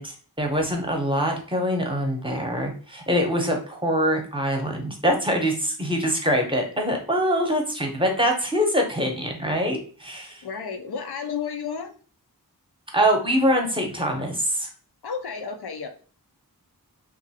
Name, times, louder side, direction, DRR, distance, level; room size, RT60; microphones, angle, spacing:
voice 1, 0.0-10.4 12.9-14.7, equal, 15° right, 2 dB, 0.8 m, -24 dB
voice 2, 10.4-11.9 15.0-15.9, left 6 dB, 90° left, 5 dB, 0.5 m, -32 dB
3.0 x 2.5 x 2.8 m, 0.42 s
wide cardioid pair, 55°, 37 cm